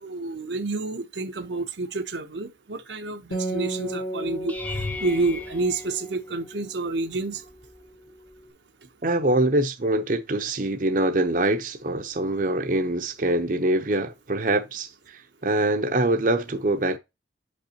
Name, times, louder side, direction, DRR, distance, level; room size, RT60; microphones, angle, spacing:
voice 1, 0.0-4.6 5.0-7.4, right 3 dB, 80° right, 0.9 m, -29 dB
Acoustic guitar, 3.3-7.0, right 1 dB, 50° left, 1.8 m, -33 dB
sound 1, 4.5-6.8 7.5-7.9 8.3-8.4 12.8-12.9, left 3 dB, 10° left, 0.8 m, -36 dB
voice 2, 9.0-14.9 15.4-17.0, right 2 dB, 50° right, 0.8 m, -24 dB
7.4 x 5.5 x 2.9 m
head